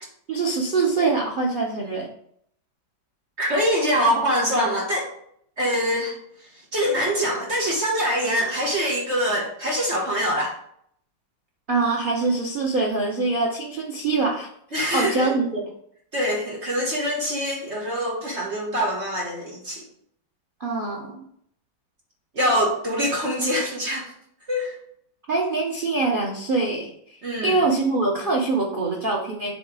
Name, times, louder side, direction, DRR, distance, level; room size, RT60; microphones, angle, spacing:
voice 1, 0.3-2.1 11.7-14.5 14.9-15.6 20.6-21.2 25.3-29.5, right 3 dB, 75° right, -2 dB, 0.4 m, -24 dB
voice 2, 3.4-5.1 5.6-6.1 6.4-10.5 14.7-15.3 16.1-19.8 22.3-24.1 24.5-24.7 27.2-27.6, equal, 40° right, -2 dB, 1.2 m, -24 dB
7.6 x 3.1 x 4.7 m, 0.69 s
omnidirectional pair, 2.2 m